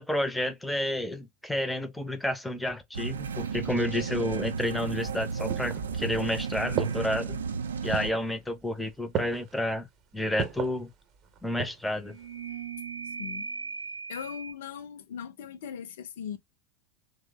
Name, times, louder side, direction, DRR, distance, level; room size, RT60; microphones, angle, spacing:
voice 1, 0.0-7.4 7.8-9.9 10.1-10.9 11.4-12.2, left 1 dB, 5° left, 0.5 m, -30 dB
sound 1, 2.9-8.1, right 5 dB, 70° right, 0.4 m, -33 dB
sound 2, 3.3-8.1 11.9-14.5, right 5 dB, 85° left, 0.9 m, -41 dB
sound 3, 5.5-6.3 6.8-7.3 7.9-8.3 9.1-9.6 10.4-10.8 11.3-11.9 12.2-12.3, right 8 dB, 35° right, 0.7 m, -34 dB
voice 2, 14.1-16.4, left 8 dB, 60° left, 0.5 m, -39 dB
3.1 x 2.0 x 3.2 m
figure-of-eight pair, 80°, 0 cm